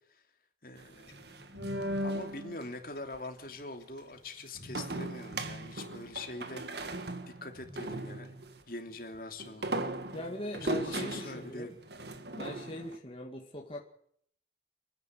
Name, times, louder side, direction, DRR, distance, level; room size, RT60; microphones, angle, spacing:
voice 1, 0.6-1.2 2.0-7.1 7.4-8.3 8.7-9.7 10.6-11.7, left 2 dB, 50° left, 5 dB, 2.9 m, -43 dB
sound 1, 0.8-2.7 4.7-8.6 9.4-13.0, right 1 dB, 70° right, 1.7 m, -38 dB
sound 2, 1.1-5.0 6.0-6.6 7.1-7.2 7.5-8.0 9.1-9.2 10.5-11.0 12.1-12.2, equal, 85° left, 5.1 m, -51 dB
voice 2, 10.1-11.8 12.2-13.8, left 1 dB, 30° left, 1 dB, 2.1 m, -40 dB
28.0 x 10.5 x 9.3 m, 0.67 s
head